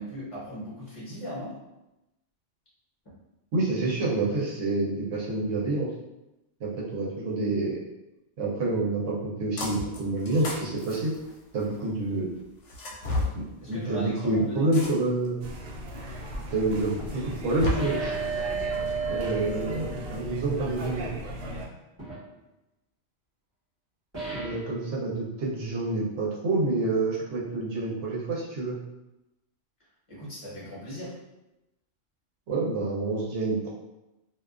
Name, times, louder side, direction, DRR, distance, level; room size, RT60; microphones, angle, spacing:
voice 1, 0.0-1.5 13.6-14.7 30.1-31.1, equal, 30° left, -7 dB, 0.9 m, -38 dB
voice 2, 3.5-5.9 6.6-7.8 8.4-11.1 11.5-12.3 13.4-15.4 16.5-18.1 19.1-21.1 24.3-28.8 32.5-33.7, right 2 dB, 85° right, -4 dB, 1.0 m, -28 dB
sound 1, 9.6-10.0 10.3-11.8 12.7-13.3 14.7-15.3 15.9-16.0 17.2-17.7, left 2 dB, 75° left, 0.9 m, -32 dB
sound 2, 15.4-21.7, equal, 60° right, 0.7 m, -37 dB
sound 3, 17.8-20.3 22.0-22.2 24.1-24.7, right 5 dB, 25° right, 1.0 m, -33 dB
2.4 x 2.2 x 2.3 m, 0.96 s
omnidirectional pair, 1.3 m